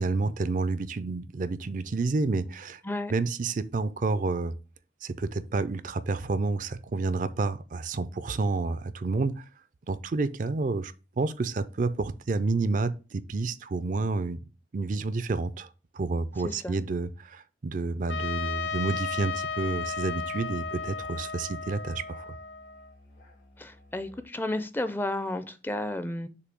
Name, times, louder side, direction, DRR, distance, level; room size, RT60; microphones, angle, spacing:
voice 1, 0.0-2.8 3.1-4.6 5.0-9.4 9.9-14.4 14.7-15.7 15.9-22.4, right 3 dB, 45° right, 0.4 m, -29 dB
voice 2, 16.4-16.8 23.6-26.3, left 1 dB, 10° left, 0.5 m, -32 dB
Trumpet, 18.1-22.9, left 5 dB, 85° left, 0.5 m, -34 dB
Musical instrument, 18.6-24.3, left 1 dB, 70° left, 2.7 m, -55 dB
6.7 x 2.7 x 5.2 m
head